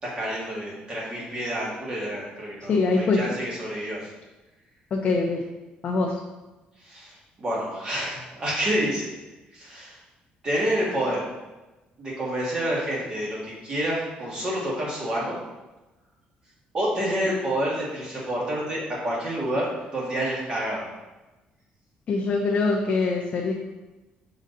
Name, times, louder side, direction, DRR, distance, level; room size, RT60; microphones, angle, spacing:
voice 1, 0.0-4.1 6.8-9.1 9.5-10.0 10.4-11.3 12.0-15.4 16.7-20.9, right 1 dB, 30° right, -5 dB, 1.9 m, -28 dB
voice 2, 2.7-3.2 4.9-5.4 5.8-6.1 22.1-23.5, left 3 dB, 40° left, -1 dB, 0.6 m, -23 dB
6.4 x 3.9 x 4.0 m, 1.1 s
cardioid pair, 155°, 3 cm